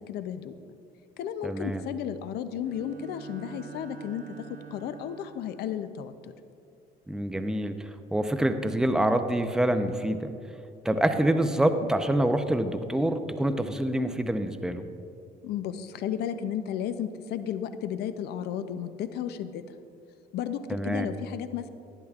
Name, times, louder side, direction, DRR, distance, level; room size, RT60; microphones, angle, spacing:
voice 1, 0.1-0.5 1.2-4.2 4.7-6.3 15.4-19.6 20.3-21.7, left 9 dB, 75° left, 10 dB, 0.5 m, -33 dB
voice 2, 1.4-1.8 7.1-7.7 8.1-10.3 10.8-14.8 20.7-21.1, right 1 dB, 5° right, 8 dB, 0.5 m, -26 dB
Bowed string instrument, 2.6-5.8, right 7 dB, 50° right, 0.7 m, -46 dB
12.0 x 10.5 x 2.4 m, 2.5 s
cardioid pair, 110°, 17 cm